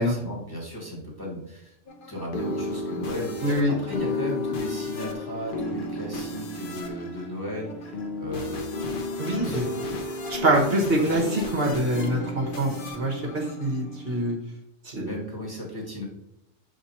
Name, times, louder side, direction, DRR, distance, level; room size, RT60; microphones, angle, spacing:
voice 1, 0.0-1.7 2.1-8.7 9.3-10.0 10.9-11.1 15.0-16.0, left 1 dB, 15° left, -4 dB, 1.5 m, -36 dB
sound 1, 1.9-14.3, left 2 dB, 45° left, 0.9 m, -33 dB
voice 2, 3.4-3.7 9.2-9.6 10.3-14.4 14.8-15.2, right 1 dB, 50° right, -1 dB, 1.3 m, -25 dB
6.8 x 3.3 x 4.1 m, 0.84 s
omnidirectional pair, 1.3 m